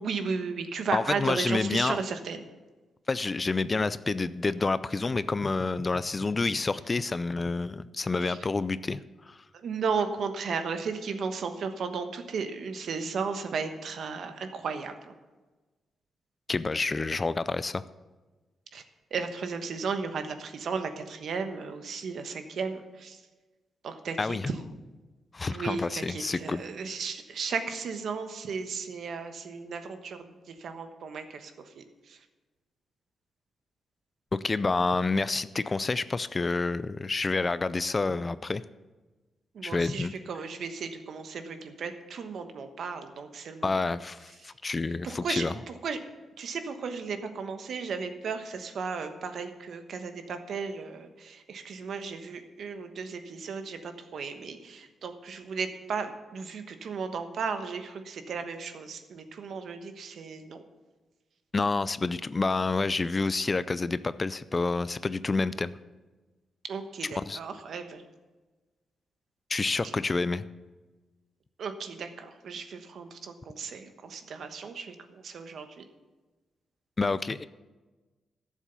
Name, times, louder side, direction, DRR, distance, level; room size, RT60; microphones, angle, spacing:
voice 1, 0.0-2.4 8.2-8.4 9.5-15.1 18.7-18.8 19.1-23.2 23.8-24.5 25.5-32.2 39.5-43.7 44.4-44.5 45.0-46.0 46.4-60.6 66.7-68.0 69.8-70.0 71.6-75.8, right 5 dB, 65° right, 8 dB, 1.2 m, -35 dB
voice 2, 0.9-2.0 3.1-9.4 16.5-17.8 24.2-24.5 25.3-26.6 34.3-38.6 39.6-40.1 43.6-45.5 61.5-65.7 67.2-67.4 69.5-70.5 77.0-77.4, left 3 dB, 25° left, 16 dB, 0.4 m, -28 dB
12.5 x 7.3 x 6.9 m, 1.2 s
cardioid pair, 110°, 0 cm